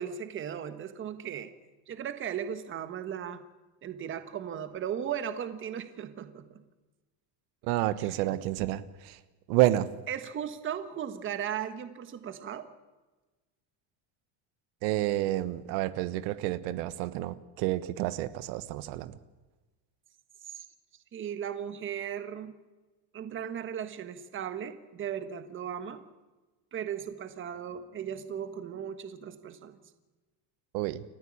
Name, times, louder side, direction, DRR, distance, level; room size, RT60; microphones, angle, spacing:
voice 1, 0.0-1.5 1.9-3.4 3.8-6.6 8.0-8.2 10.1-12.7 20.5-20.6 21.1-22.5 23.1-26.0 26.7-29.8, right 9 dB, 25° right, 10 dB, 1.4 m, -37 dB
voice 2, 7.6-9.2 9.5-9.9 14.8-19.2 30.7-31.0, right 15 dB, 75° right, 14 dB, 1.4 m, -29 dB
29.0 x 14.5 x 8.7 m, 1.2 s
cardioid pair, 170°, 50 cm